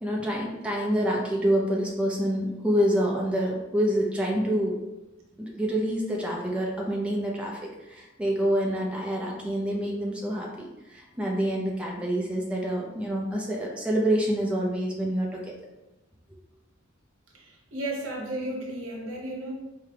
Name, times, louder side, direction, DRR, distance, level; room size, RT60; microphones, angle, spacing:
voice 1, 0.0-4.8 5.4-15.5 16.3-16.4, equal, 5° right, -3 dB, 0.4 m, -27 dB
voice 2, 17.3-19.5, right 1 dB, 75° right, -2 dB, 1.1 m, -34 dB
4.8 x 2.2 x 3.3 m, 1.0 s
head